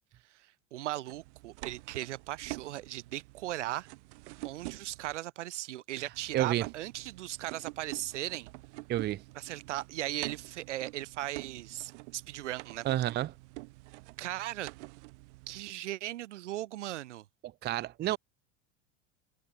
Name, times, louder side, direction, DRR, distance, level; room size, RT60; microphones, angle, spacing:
voice 1, 0.3-3.9 4.4-8.5 9.3-12.9 14.2-14.7 15.5-17.2, right 15 dB, 90° right, 1.1 m, -38 dB
sound 1, 1.0-5.2 6.1-15.6, right 23 dB, 75° right, 2.0 m, -47 dB
voice 2, 6.3-6.6 8.9-9.2 12.8-13.3 17.4-18.2, right 14 dB, 30° right, 0.5 m, -30 dB
hypercardioid pair, 95°, 35 cm